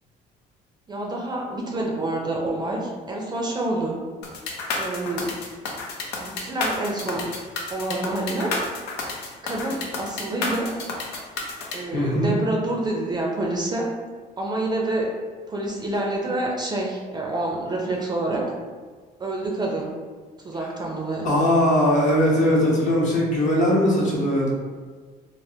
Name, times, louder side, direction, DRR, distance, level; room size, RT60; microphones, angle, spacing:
voice 1, 0.9-4.0 4.8-5.3 6.2-7.3 7.7-8.5 9.4-10.7 11.7-13.8 14.4-15.1 15.5-18.4 19.2-19.9 20.4-21.3, right 2 dB, 25° right, -1 dB, 0.5 m, -27 dB
sound 1, 4.2-11.8, left 3 dB, 85° left, 0.6 m, -30 dB
voice 2, 11.9-12.3 21.2-24.5, equal, 50° left, -4 dB, 0.8 m, -20 dB
3.3 x 2.1 x 2.7 m, 1.5 s
cardioid pair, 110°, 17 cm